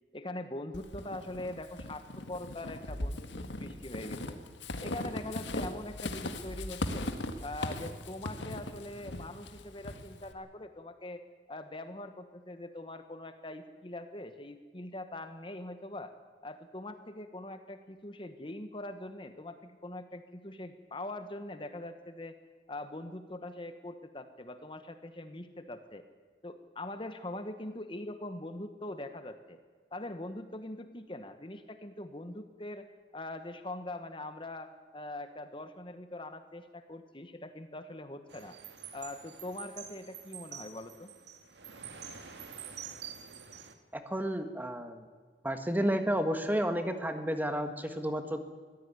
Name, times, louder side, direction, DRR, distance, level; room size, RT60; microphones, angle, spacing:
voice 1, 0.1-4.4 4.8-7.1 7.4-11.2 11.5-16.1 16.4-22.4 22.7-26.0 26.4-29.6 29.9-32.9 33.1-38.6 38.9-41.1, left 1 dB, 30° left, 9 dB, 1.2 m, -42 dB
Walk footsteps / Squeak, 0.7-10.3, left 1 dB, 85° left, 1.8 m, -39 dB
sound 1, 38.3-43.7, right 8 dB, 75° right, 2.1 m, -47 dB
voice 2, 43.9-45.0 45.4-48.4, equal, 10° right, 7 dB, 1.6 m, -31 dB
23.5 x 16.0 x 9.5 m, 1.5 s
head